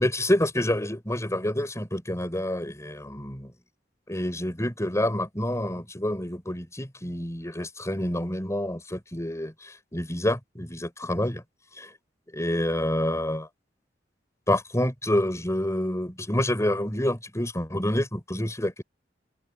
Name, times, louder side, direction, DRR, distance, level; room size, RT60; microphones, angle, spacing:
voice 1, 0.0-3.5 4.1-11.4 12.3-13.5 14.5-18.8, left 1 dB, 15° left, 6.4 m, -28 dB
open air
head